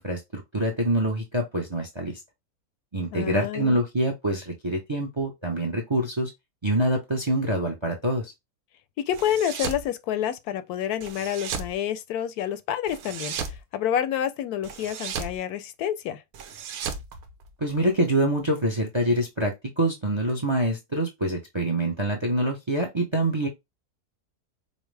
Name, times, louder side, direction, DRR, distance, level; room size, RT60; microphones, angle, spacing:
voice 1, 0.0-2.1 2.9-6.3 6.6-8.3 17.6-23.5, right 1 dB, 30° right, 0.5 m, -25 dB
voice 2, 3.1-3.8 9.1-13.3 13.7-16.2, left 10 dB, 80° left, 1.1 m, -28 dB
sound 1, 9.1-9.9 11.0-11.7 12.9-13.6 14.6-15.4 16.3-17.9, right 6 dB, 75° right, 1.1 m, -34 dB
5.3 x 2.1 x 3.2 m
omnidirectional pair, 1.6 m